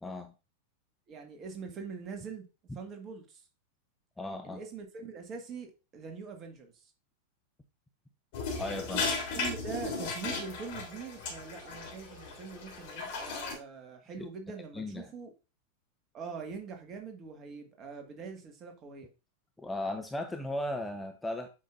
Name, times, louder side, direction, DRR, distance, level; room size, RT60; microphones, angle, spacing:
voice 1, 0.0-0.3 4.2-4.6 8.6-9.1 14.2-14.3 14.7-15.1 19.6-21.5, left 1 dB, 10° left, 0.7 m, -36 dB
voice 2, 1.1-2.5 2.7-3.5 4.4-6.9 9.3-15.3 16.1-19.1, right 5 dB, 30° right, 1.6 m, -43 dB
sound 1, 8.3-13.5, left 4 dB, 50° left, 3.1 m, -36 dB
8.3 x 5.7 x 2.5 m
figure-of-eight pair, 90°, 0 cm